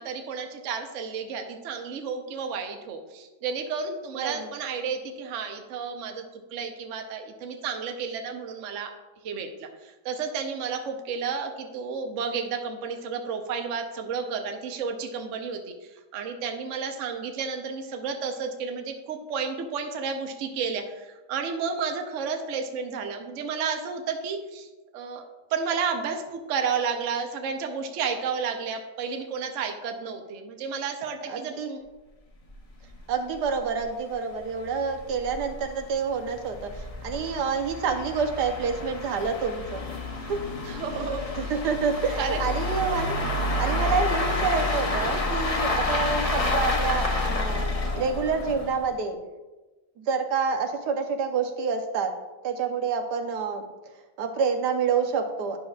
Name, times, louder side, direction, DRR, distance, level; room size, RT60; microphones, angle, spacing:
voice 1, 0.0-6.2 6.5-8.9 9.2-24.7 24.9-25.2 25.5-31.8 40.6-41.5 42.2-42.4, right 5 dB, 55° right, 4 dB, 0.9 m, -32 dB
voice 2, 4.1-4.5 31.3-31.7 33.1-39.9 40.3-40.4 41.4-43.2 43.6-49.2 50.0-52.1 52.4-53.6 54.2-55.6, right 5 dB, 75° right, 5 dB, 1.3 m, -28 dB
sound 1, 32.5-32.6 32.9-33.0 33.4-33.5 33.8-33.9 34.5-48.9, left 2 dB, 45° left, 0.4 m, -29 dB
11.0 x 6.1 x 2.4 m, 1.1 s
omnidirectional pair, 1.8 m